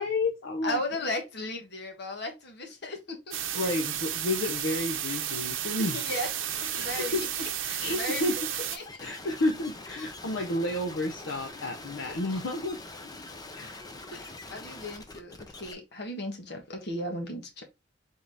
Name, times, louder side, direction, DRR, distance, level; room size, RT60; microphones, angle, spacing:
voice 1, 0.0-0.8 3.5-6.0 6.7-7.5 7.8-8.4 9.0-12.8 13.5-13.8, left 2 dB, 75° left, 0.7 m, -31 dB
voice 2, 0.6-3.4 5.9-7.3 7.6-8.4 8.7-9.1 14.1-17.6, left 1 dB, 60° left, 1.4 m, -36 dB
sound 1, 3.3-8.8, right 10 dB, 85° right, 0.7 m, -33 dB
sound 2, 6.1-15.7, left 2 dB, 20° left, 0.7 m, -45 dB
3.9 x 3.7 x 3.4 m
head